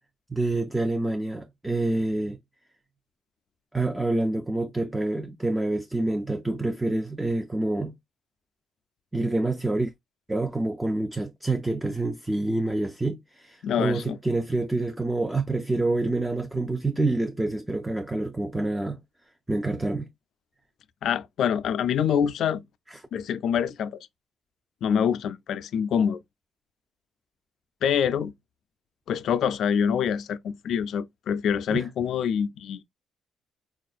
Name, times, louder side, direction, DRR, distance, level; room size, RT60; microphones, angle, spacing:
voice 1, 0.3-2.4 3.7-7.9 9.1-9.9 10.3-19.0 19.5-20.1 22.9-23.0 31.7-31.9, right 2 dB, 10° right, 0.4 m, -27 dB
voice 2, 13.6-14.2 21.0-22.6 23.1-24.0 24.8-26.2 27.8-28.3 29.1-32.8, left 8 dB, 70° left, 0.3 m, -25 dB
4.1 x 2.4 x 2.3 m
cardioid pair, 90°, 0 cm